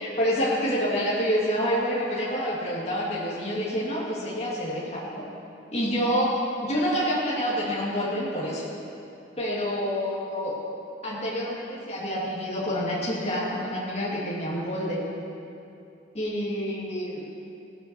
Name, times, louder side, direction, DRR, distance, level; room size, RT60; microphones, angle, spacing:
voice 1, 0.0-5.3 5.7-8.7 9.4-10.6 11.0-15.1 16.1-17.2, equal, 35° left, -6 dB, 1.9 m, -27 dB
17.0 x 5.7 x 6.6 m, 2.7 s
head